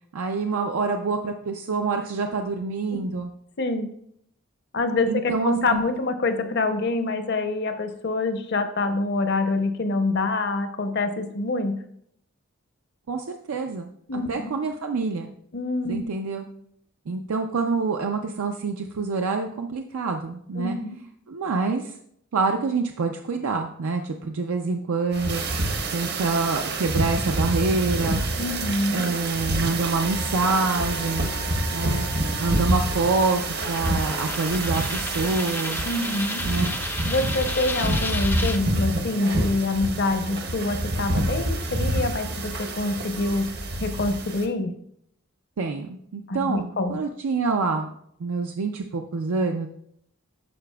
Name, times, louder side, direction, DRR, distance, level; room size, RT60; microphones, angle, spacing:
voice 1, 0.1-3.3 5.1-5.8 13.1-15.3 15.9-16.4 17.1-20.8 21.3-21.9 22.3-25.4 25.9-28.2 28.9-31.3 31.7-32.1 32.4-33.4 33.7-35.8 36.4-36.7 45.6-47.9 48.2-49.7, right 4 dB, 85° right, 4 dB, 0.5 m, -26 dB
voice 2, 3.6-3.9 4.7-11.8 14.1-14.5 15.5-16.1 20.6-21.0 28.4-29.0 35.8-36.4 37.1-43.5 43.8-44.7 46.3-47.0, left 2 dB, 50° left, 8 dB, 0.7 m, -26 dB
sound 1, 25.1-44.5, right 2 dB, 50° right, 0.8 m, -27 dB
Wind instrument woodwind instrument, 29.6-34.5, left 8 dB, 85° left, 0.7 m, -42 dB
Coin (dropping), 33.1-38.6, left 2 dB, 10° left, 0.3 m, -33 dB
11.5 x 4.8 x 2.3 m, 0.69 s
head